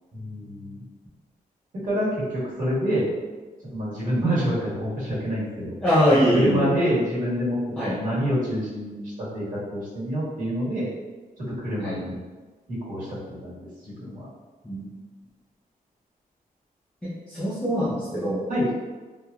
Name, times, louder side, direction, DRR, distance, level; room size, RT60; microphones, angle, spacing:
voice 1, 0.1-0.8 1.8-3.1 3.7-5.8 6.3-10.9 11.6-12.1 12.7-14.3 18.5-18.7, equal, 65° right, -9 dB, 1.5 m, -27 dB
voice 2, 5.8-6.7 7.8-8.0 11.8-12.0 14.6-14.9 17.0-18.4, equal, 5° left, -10 dB, 0.4 m, -23 dB
3.0 x 2.2 x 2.4 m, 1.3 s
wide cardioid pair, 175°, 15 cm